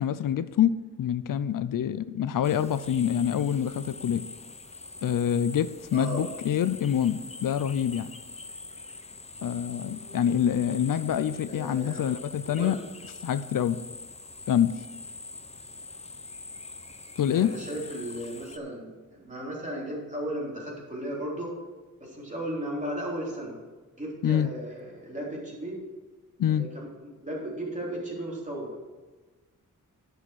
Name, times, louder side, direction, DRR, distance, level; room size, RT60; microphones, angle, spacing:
voice 1, 0.0-4.2 5.0-8.1 9.4-12.8 13.2-13.8 14.5-14.7 17.2-17.5 24.2-24.5 26.4-26.7, left 9 dB, 80° left, 14 dB, 0.5 m, -26 dB
sound 1, 2.4-18.6, left 3 dB, 20° left, 0.7 m, -43 dB
voice 2, 5.9-6.2 11.5-12.1 12.4-12.8 17.3-21.5 22.0-23.6 24.0-25.8 26.5-28.8, right 1 dB, 25° right, -4 dB, 3.7 m, -35 dB
11.0 x 6.4 x 5.9 m, 1.3 s
wide cardioid pair, 110°, 32 cm